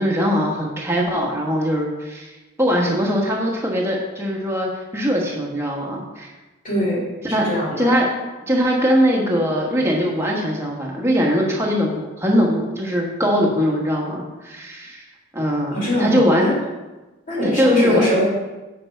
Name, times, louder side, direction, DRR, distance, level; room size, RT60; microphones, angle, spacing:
voice 1, 0.0-2.3 2.6-6.3 7.2-7.5 7.8-8.1 8.5-15.0 15.3-16.5 17.4-18.0, equal, 15° right, -2 dB, 1.3 m, -21 dB
voice 2, 6.6-7.0 7.4-7.9 15.7-16.5 17.3-18.2, equal, 40° left, -6 dB, 2.6 m, -22 dB
7.0 x 5.6 x 4.5 m, 1.1 s
head